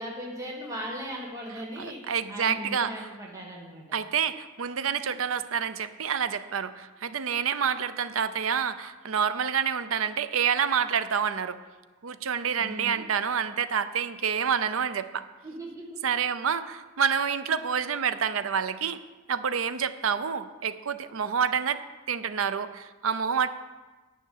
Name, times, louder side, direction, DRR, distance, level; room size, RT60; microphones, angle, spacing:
voice 1, 0.0-2.0 2.3-3.8 12.6-13.0 15.4-16.0, equal, 15° right, -3 dB, 1.7 m, -38 dB
voice 2, 1.8-3.1 3.9-11.6 12.0-15.2 16.0-19.0 19.3-23.5, right 7 dB, 70° right, 12 dB, 0.6 m, -28 dB
10.0 x 5.8 x 8.4 m, 1.2 s
head